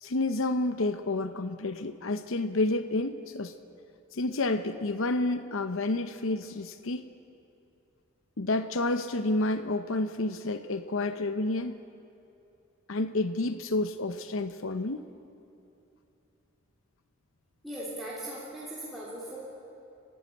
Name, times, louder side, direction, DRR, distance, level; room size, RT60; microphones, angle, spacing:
voice 1, 0.0-3.5 4.1-7.0 8.4-11.8 12.9-15.0, left 2 dB, 75° left, 9 dB, 0.8 m, -29 dB
voice 2, 17.6-19.4, right 1 dB, ahead, -8 dB, 3.3 m, -39 dB
30.0 x 12.5 x 8.5 m, 2.7 s
head